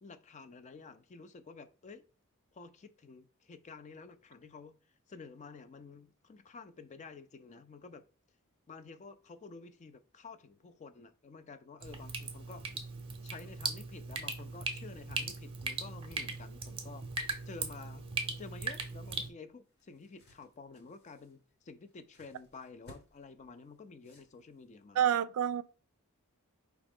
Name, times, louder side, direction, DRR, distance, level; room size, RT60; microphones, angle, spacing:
voice 1, 0.0-2.0 2.5-4.7 5.1-8.0 8.7-12.6 13.2-17.0 17.5-18.1 18.4-25.0, left 4 dB, 30° left, 0.4 m, -51 dB
Drip, 11.8-19.3, right 4 dB, 25° right, 0.7 m, -39 dB
sound 1, 19.4-24.8, equal, 50° left, 1.1 m, -61 dB
voice 2, 25.0-25.6, right 9 dB, 70° right, 0.3 m, -28 dB
4.8 x 2.9 x 3.6 m
head